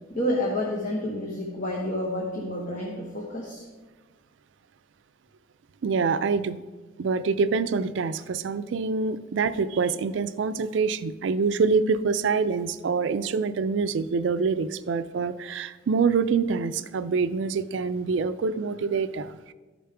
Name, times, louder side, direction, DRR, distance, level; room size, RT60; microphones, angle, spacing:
voice 1, 0.1-3.6, left 1 dB, 40° left, -2 dB, 1.1 m, -29 dB
voice 2, 5.8-6.6 7.0-19.5, right 5 dB, 65° right, 13 dB, 0.4 m, -26 dB
13.5 x 5.0 x 3.4 m, 1.3 s
head